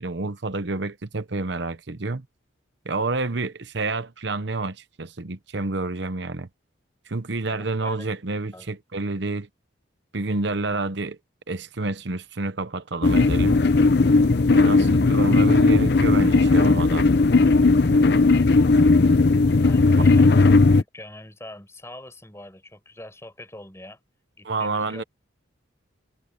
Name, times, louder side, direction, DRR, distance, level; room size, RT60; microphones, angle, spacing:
voice 1, 0.0-2.2 2.8-6.5 7.1-9.5 10.1-11.2 11.5-13.6 14.5-17.1 20.0-20.1 24.4-25.0, right 3 dB, 60° right, 1.0 m, -29 dB
voice 2, 7.5-8.1 8.5-8.8 19.6-24.0 24.4-25.1, left 1 dB, 15° left, 5.8 m, -43 dB
sound 1, 13.0-20.8, left 3 dB, 55° left, 0.7 m, -17 dB
head